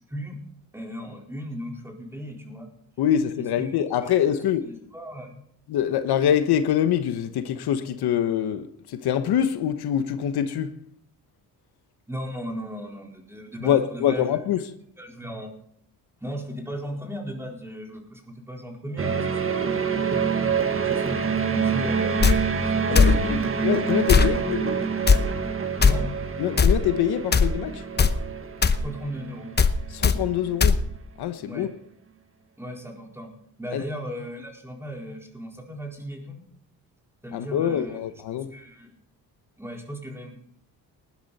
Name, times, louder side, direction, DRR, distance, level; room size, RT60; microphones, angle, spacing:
voice 1, 0.7-2.7 3.4-4.1 4.6-5.3 12.1-14.4 15.0-15.5 16.2-19.8 20.7-23.5 24.0-24.4 25.8-26.1 28.8-29.5 31.4-31.7 32.6-33.3 33.6-36.4 37.2-38.0 38.3-38.9 39.6-40.4, equal, 5° right, 4.1 m, -36 dB
voice 2, 3.0-4.7 5.7-10.7 13.6-14.6 22.9-23.4 23.6-24.7 26.4-27.8 29.9-30.8 31.2-31.7 33.7-33.8 37.3-38.5, left 10 dB, 80° left, 1.1 m, -24 dB
sound 1, 19.0-30.3, right 6 dB, 35° right, 1.6 m, -27 dB
sound 2, 22.2-22.4 23.0-23.2 24.1-24.3 25.1-25.2 25.8-25.9 26.6-26.8 27.3-27.5 28.0-28.2 28.6-28.8 29.6-29.7 30.0-30.2 30.6-30.8, left 5 dB, 25° left, 0.9 m, -17 dB
19.0 x 11.5 x 4.2 m
cardioid pair, 100°, 38 cm